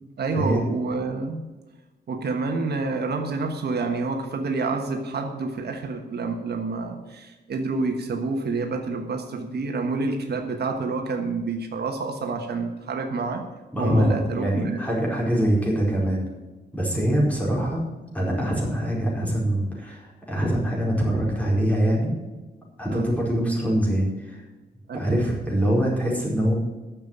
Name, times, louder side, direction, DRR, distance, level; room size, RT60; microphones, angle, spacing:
voice 1, 0.2-1.4 2.1-13.5 13.8-14.8 16.9-17.2 22.9-23.1 24.9-25.3, right 3 dB, 60° right, 3 dB, 1.4 m, -28 dB
voice 2, 13.7-16.2 16.7-17.9 18.1-22.2 22.8-24.4 24.9-26.5, equal, 10° left, -4 dB, 4.6 m, -24 dB
10.5 x 7.1 x 8.6 m, 1.2 s
wide cardioid pair, 135°, 19 cm